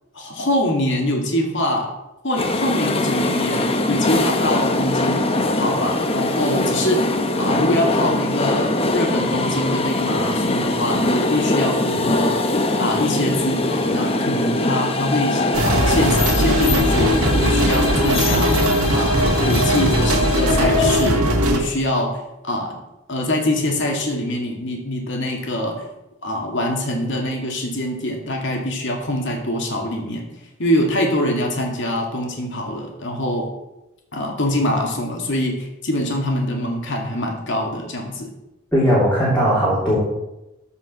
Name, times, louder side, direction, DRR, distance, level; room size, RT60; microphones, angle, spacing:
voice 1, 0.1-1.9 2.2-5.2 5.6-12.4 12.8-18.6 18.9-22.8 23.1-25.9 26.2-30.3 30.6-33.5 34.1-38.3, left 1 dB, 55° left, 1 dB, 2.4 m, -24 dB
sound 1, 2.4-21.1, left 2 dB, 25° left, 0.8 m, -22 dB
sound 2, 15.5-21.6, equal, 90° right, 1.7 m, -19 dB
voice 2, 38.7-40.0, equal, 5° left, -9 dB, 3.2 m, -17 dB
14.0 x 5.6 x 6.1 m, 0.96 s
head